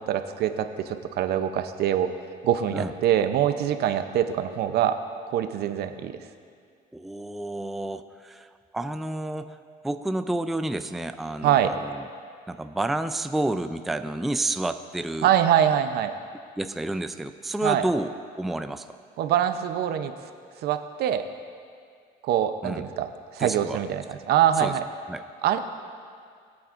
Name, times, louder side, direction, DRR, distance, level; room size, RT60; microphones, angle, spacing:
voice 1, 0.0-2.1 2.4-5.0 5.3-6.1 11.4-11.7 15.2-16.1 17.6-17.8 19.2-20.1 20.6-21.3 22.2-24.8 25.4-25.6, right 10 dB, 70° right, 9 dB, 0.7 m, -24 dB
voice 2, 6.9-9.6 9.8-12.1 12.5-15.3 16.6-19.0 22.6-22.9 23.4-23.8 24.6-24.8 25.1-25.2, right 1 dB, ahead, 9 dB, 0.3 m, -30 dB
20.0 x 8.6 x 2.5 m, 2.2 s
cardioid pair, 110°, 17 cm